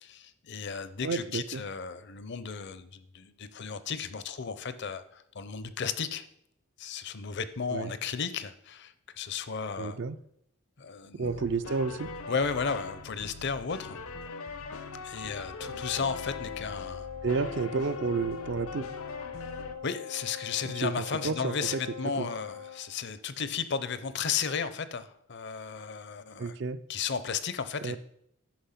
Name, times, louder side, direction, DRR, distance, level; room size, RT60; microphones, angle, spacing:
voice 1, 0.0-6.2 6.8-10.0 10.8-11.3 12.3-14.0 15.0-17.1 19.8-26.6 26.9-28.0, left 6 dB, 50° left, 13 dB, 0.6 m, -34 dB
voice 2, 1.0-1.6 7.7-7.9 9.8-10.2 11.2-12.1 17.2-18.9 20.8-21.8 22.2-22.3 26.4-26.8 27.8-28.0, right 4 dB, 55° right, 14 dB, 0.4 m, -31 dB
sound 1, 11.2-19.8, left 4 dB, 80° left, 0.8 m, -41 dB
Wind instrument woodwind instrument, 15.6-22.9, left 7 dB, 70° right, 1.1 m, -42 dB
10.5 x 5.5 x 5.7 m, 0.73 s
head